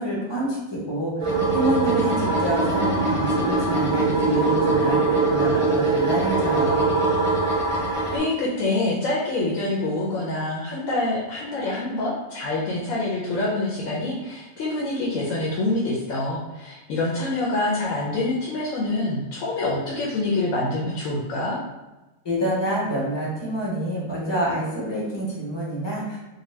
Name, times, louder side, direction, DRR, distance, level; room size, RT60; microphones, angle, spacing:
voice 1, 0.0-6.9 22.2-26.2, right 1 dB, 30° left, -5 dB, 0.5 m, -27 dB
sound 1, 1.2-8.2, right 3 dB, 45° right, 0.4 m, -22 dB
voice 2, 8.1-21.6, left 2 dB, 80° left, -5 dB, 1.0 m, -26 dB
2.6 x 2.2 x 3.1 m, 1.1 s
omnidirectional pair, 1.4 m